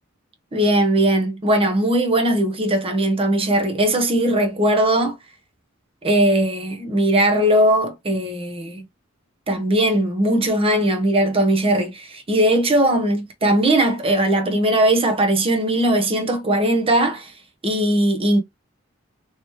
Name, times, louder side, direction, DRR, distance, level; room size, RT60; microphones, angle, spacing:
voice 1, 0.5-5.2 6.0-8.8 9.5-17.3 17.6-18.4, right 1 dB, 30° right, 0.8 m, -19 dB
3.2 x 3.0 x 3.0 m
head